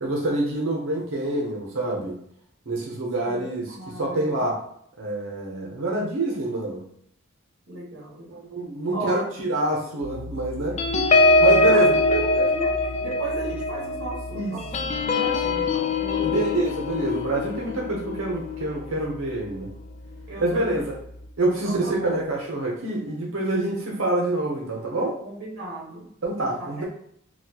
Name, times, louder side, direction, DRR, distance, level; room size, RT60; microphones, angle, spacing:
voice 1, 0.0-2.1 2.7-4.6 5.0-6.8 8.3-10.7 11.4-12.5 14.3-14.5 16.2-19.7 20.4-20.9 21.4-25.2 26.2-26.8, right 2 dB, 70° right, -2 dB, 0.8 m, -26 dB
voice 2, 3.2-4.5 7.7-8.4 8.9-9.3 10.7-11.1 11.7-12.7 13.0-16.6 20.3-20.9 21.6-22.3 25.2-26.1 26.6-26.8, right 2 dB, 55° right, -5 dB, 1.2 m, -35 dB
Piano, 10.0-16.3, left 2 dB, 90° right, 0.4 m, -40 dB
sound 1, 10.8-19.7 20.1-20.3 20.6-20.9, left 2 dB, 30° left, 0.3 m, -23 dB
4.1 x 2.3 x 2.8 m, 0.67 s
head